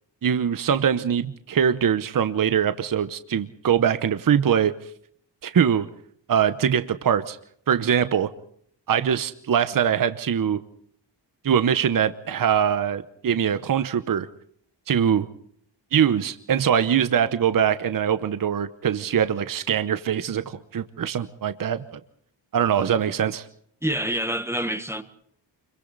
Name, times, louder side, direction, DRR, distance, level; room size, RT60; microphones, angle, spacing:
voice 1, 0.2-4.7 5.4-5.9 6.3-7.4 7.7-8.3 8.9-10.6 11.4-14.3 14.9-15.3 15.9-22.0 22.5-23.4, right 8 dB, 50° right, 1.0 m, -22 dB
voice 2, 23.8-25.0, right 1 dB, 5° right, 1.4 m, -26 dB
29.5 x 23.0 x 4.0 m
wide cardioid pair, 175°, 43 cm